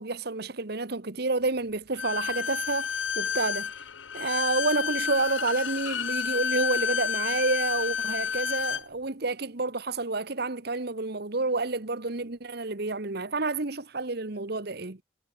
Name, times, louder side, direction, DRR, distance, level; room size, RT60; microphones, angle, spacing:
voice 1, 0.0-3.7 4.1-15.0, right 3 dB, 55° right, 1.3 m, -29 dB
Bowed string instrument, 2.0-8.8, left 7 dB, 80° left, 1.7 m, -30 dB
head